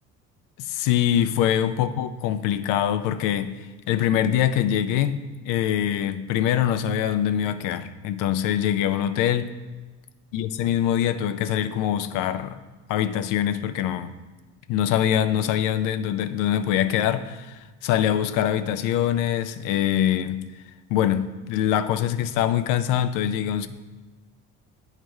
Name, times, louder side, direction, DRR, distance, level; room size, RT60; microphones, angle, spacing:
voice 1, 0.6-9.5 10.3-12.6 12.9-14.1 14.7-20.4 20.9-23.7, left 10 dB, 85° left, 11 dB, 0.5 m, -24 dB
9.0 x 3.3 x 4.6 m, 1.2 s
cardioid pair, 95°, 31 cm